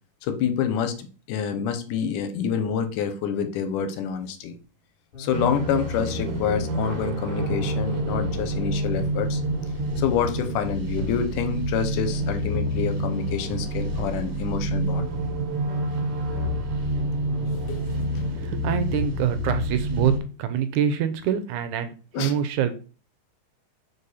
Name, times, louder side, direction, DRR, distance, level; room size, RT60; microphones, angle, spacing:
voice 1, 0.2-4.5 5.2-9.4 10.0-15.1 17.7-18.0 22.1-22.3, left 7 dB, 80° left, 8 dB, 2.3 m, -27 dB
sound 1, 5.1-6.4 7.1-7.2 7.4-7.7 8.0-8.9 9.8-10.7 11.0-11.2 12.2-13.7 14.0-14.3 15.7-15.9 16.3-16.6 17.3-17.6 18.2-18.4 18.8-18.9 20.0-20.1, left 4 dB, 45° left, 3.1 m, -41 dB
sound 2, 5.3-20.2, right 1 dB, 55° right, 1.7 m, -28 dB
voice 2, 18.3-20.1 20.4-22.7, right 9 dB, 80° right, 10 dB, 2.0 m, -25 dB
5.2 x 4.7 x 4.1 m, 0.36 s
omnidirectional pair, 3.7 m